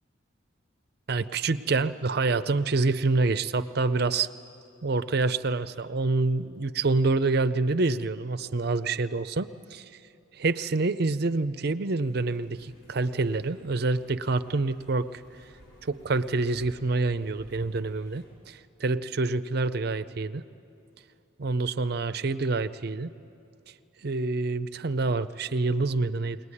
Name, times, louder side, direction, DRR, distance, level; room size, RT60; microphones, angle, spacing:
voice 1, 1.1-4.3 4.8-9.9 10.4-15.2 15.9-20.4 21.4-23.1 24.0-26.4, right 3 dB, 55° right, 13 dB, 0.6 m, -27 dB
sound 1, 12.0-18.2, right 1 dB, 80° left, 7.7 m, -56 dB
21.5 x 20.0 x 9.8 m, 2.6 s
head